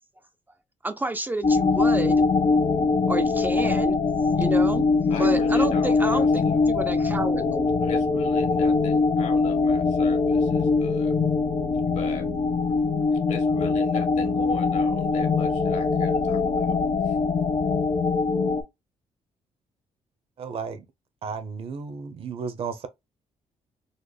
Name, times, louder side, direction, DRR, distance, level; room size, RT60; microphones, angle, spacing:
voice 1, 0.8-2.2 3.1-4.0 4.4-7.7, right 2 dB, 15° right, 0.4 m, -30 dB
sound 1, 1.4-18.6, left 4 dB, 50° left, 0.9 m, -22 dB
voice 2, 5.1-6.6 7.8-11.2 11.8-12.3 13.1-16.7 17.0-17.2, left 5 dB, 70° left, 1.5 m, -38 dB
voice 3, 20.4-20.8 21.2-22.9, right 5 dB, 50° right, 0.7 m, -33 dB
4.0 x 2.1 x 3.3 m
cardioid pair, 120°, 12 cm